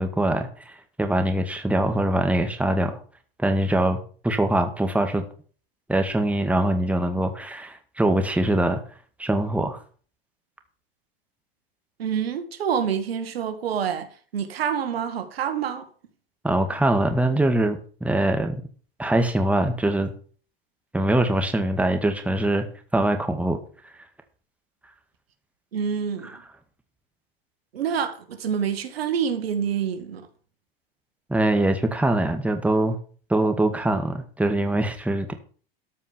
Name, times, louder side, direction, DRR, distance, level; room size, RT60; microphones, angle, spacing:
voice 1, 0.0-3.0 3.4-5.2 5.9-8.8 9.2-9.8 16.4-18.6 19.0-20.1 20.9-22.7 22.9-23.6 26.2-26.4 31.3-33.0 33.3-35.3, right 1 dB, 5° right, 1.9 m, -23 dB
voice 2, 12.0-14.1 14.3-15.9 25.7-26.4 27.7-30.3, right 7 dB, 85° right, 2.0 m, -27 dB
13.0 x 5.4 x 6.9 m
hypercardioid pair, 105°, 29 cm